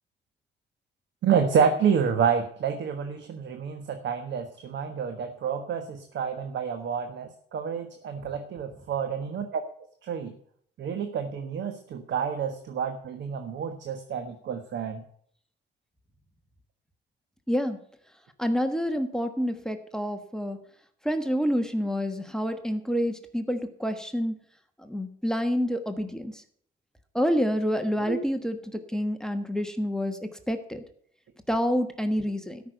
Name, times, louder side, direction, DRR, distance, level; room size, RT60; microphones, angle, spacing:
voice 1, 1.2-9.6 10.0-10.3 10.8-15.0 28.1-28.2, right 7 dB, 65° right, 6 dB, 1.4 m, -28 dB
voice 2, 17.5-17.8 18.4-20.6 21.0-24.4 24.8-26.4 27.1-30.8 31.5-32.6, equal, 5° left, 8 dB, 1.3 m, -28 dB
13.0 x 6.1 x 7.8 m, 0.62 s
cardioid pair, 90°, 20 cm